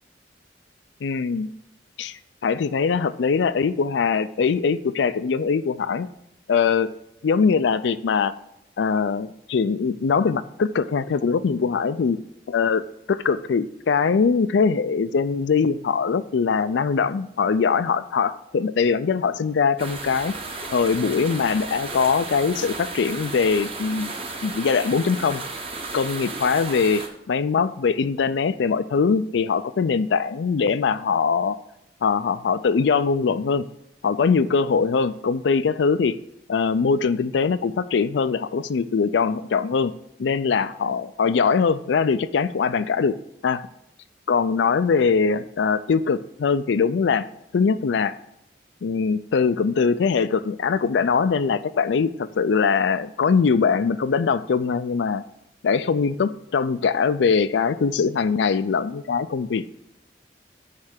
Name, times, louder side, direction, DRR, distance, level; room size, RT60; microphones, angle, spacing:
voice 1, 1.0-1.5 2.0-6.1 6.5-6.9 7.2-8.3 8.8-12.2 12.5-12.8 13.1-20.3 20.7-24.1 24.4-25.4 25.9-31.6 32.0-33.6 34.0-36.2 36.5-39.9 40.2-43.1 43.4-43.6 44.3-47.2 47.5-48.1 48.8-55.2 55.6-59.6, left 5 dB, 80° left, 14 dB, 0.4 m, -22 dB
sound 1, 19.8-27.1, right 3 dB, 30° right, 0.9 m, -34 dB
9.5 x 3.3 x 6.4 m, 0.81 s
head